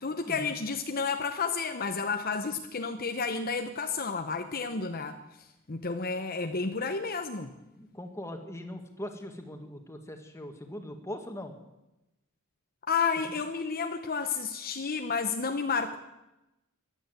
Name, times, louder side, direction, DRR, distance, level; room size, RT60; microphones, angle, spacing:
voice 1, 0.0-5.2 5.7-7.5 12.9-16.0, left 5 dB, 45° left, 6 dB, 0.9 m, -31 dB
voice 2, 7.7-11.5, left 1 dB, 15° left, 5 dB, 1.8 m, -41 dB
14.5 x 11.5 x 8.0 m, 0.95 s
head